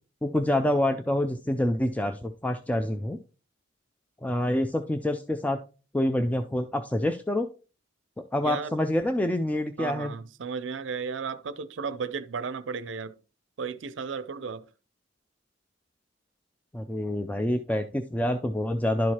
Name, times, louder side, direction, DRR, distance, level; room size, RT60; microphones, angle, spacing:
voice 1, 0.2-3.2 4.2-5.6 5.9-7.5 8.3-10.1 16.7-19.1, left 1 dB, 10° left, 0.3 m, -27 dB
voice 2, 9.8-13.2 13.6-14.6, right 5 dB, 75° right, 0.5 m, -34 dB
11.5 x 4.7 x 2.8 m
head